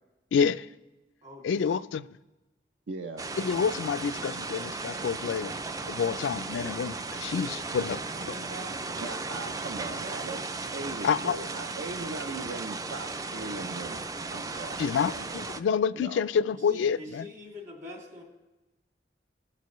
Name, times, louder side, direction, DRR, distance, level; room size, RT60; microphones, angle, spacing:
voice 1, 0.3-0.7 1.4-2.0 3.4-5.5 5.9-8.0 11.0-11.4 14.8-17.2, left 6 dB, 80° left, 0.3 m, -28 dB
voice 2, 1.2-1.9 7.4-9.3 16.5-18.2, left 1 dB, 45° right, 2.6 m, -45 dB
voice 3, 2.9-3.3 9.0-15.2 15.9-16.3, right 3 dB, 70° right, 0.5 m, -39 dB
sound 1, 3.2-15.6, right 3 dB, 20° right, 0.3 m, -36 dB
17.5 x 6.7 x 3.1 m
head